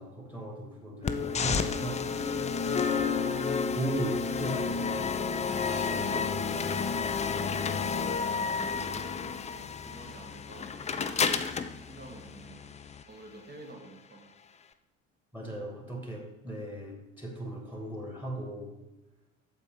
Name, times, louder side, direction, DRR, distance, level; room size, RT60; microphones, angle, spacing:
voice 1, 0.0-2.0 3.8-4.9 15.3-18.7, right 2 dB, 5° right, 1 dB, 2.5 m, -37 dB
sound 1, 1.0-13.0, left 5 dB, 15° left, 0.6 m, -31 dB
voice 2, 4.7-5.0 5.5-6.7 7.1-9.4 9.8-11.4 11.8-12.7 13.0-14.3, right 2 dB, 25° right, 2 dB, 2.1 m, -48 dB
8.3 x 7.3 x 5.1 m, 1.0 s
figure-of-eight pair, 55°, 38 cm